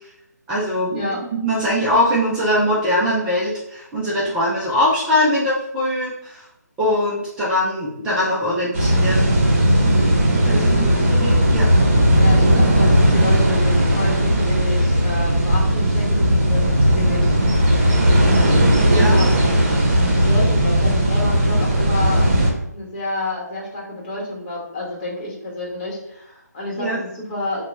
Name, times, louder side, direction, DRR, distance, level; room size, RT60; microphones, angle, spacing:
voice 1, 0.5-1.1 1.4-6.5 6.8-9.4 10.4-11.7 18.8-19.3 26.8-27.0, left 1 dB, 10° right, -7 dB, 0.5 m, -22 dB
sound 1, 8.7-22.5, equal, 40° right, 0.9 m, -16 dB
voice 2, 10.4-11.0 12.1-17.4 19.0-19.3 20.1-22.3 22.7-27.6, left 2 dB, 30° left, -4 dB, 1.2 m, -29 dB
2.8 x 2.2 x 4.0 m, 0.79 s
figure-of-eight pair, 150°, 10 cm